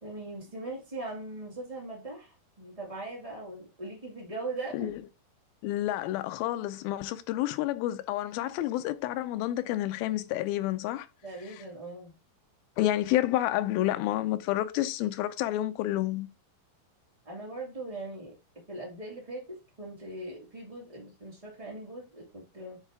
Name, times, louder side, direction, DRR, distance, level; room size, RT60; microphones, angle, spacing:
voice 1, 0.0-4.9 11.2-12.2 17.2-18.4 18.7-22.8, right 2 dB, 40° right, 0.5 m, -40 dB
voice 2, 5.6-11.1 12.8-16.3, left 14 dB, 80° left, 2.3 m, -29 dB
8.1 x 4.6 x 3.5 m
omnidirectional pair, 4.7 m